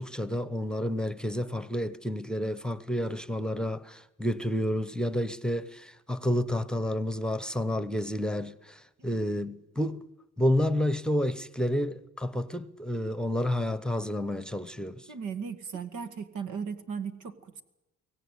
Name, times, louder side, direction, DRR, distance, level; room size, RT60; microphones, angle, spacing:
voice 1, 0.0-10.0 10.4-15.1, left 1 dB, 5° left, 1.0 m, -30 dB
voice 2, 15.1-17.6, right 6 dB, 80° right, 2.0 m, -37 dB
23.5 x 17.5 x 9.9 m
cardioid pair, 90°, 30 cm